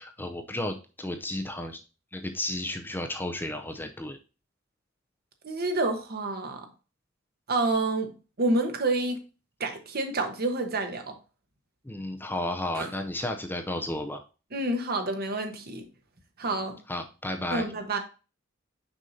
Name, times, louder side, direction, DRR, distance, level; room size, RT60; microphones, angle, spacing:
voice 1, 0.0-1.8 2.1-4.2 11.8-14.2 16.5-16.6 16.9-17.7, left 1 dB, 10° left, 0.6 m, -33 dB
voice 2, 5.4-6.7 7.5-9.2 9.6-11.2 12.7-12.9 14.5-15.8 16.4-16.7 17.5-18.0, right 2 dB, 50° right, 1.2 m, -28 dB
6.3 x 5.4 x 2.7 m
head